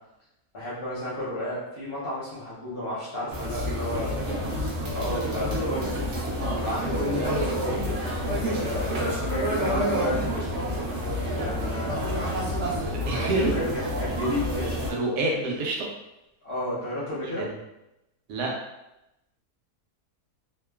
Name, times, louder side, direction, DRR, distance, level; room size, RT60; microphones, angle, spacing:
voice 1, 0.5-4.1 4.9-6.0 6.5-8.0 8.3-10.7 11.4-12.4 13.1-14.7 16.4-17.5, left 1 dB, 55° left, -8 dB, 0.7 m, -32 dB
sound 1, 3.3-14.9, equal, 60° right, 0.8 m, -28 dB
voice 2, 4.0-4.3 12.9-13.5 14.2-14.3 14.9-15.9 17.2-17.5 18.3-18.5, right 2 dB, 85° right, -1 dB, 1.2 m, -28 dB
2.9 x 2.2 x 2.2 m, 0.90 s
omnidirectional pair, 1.7 m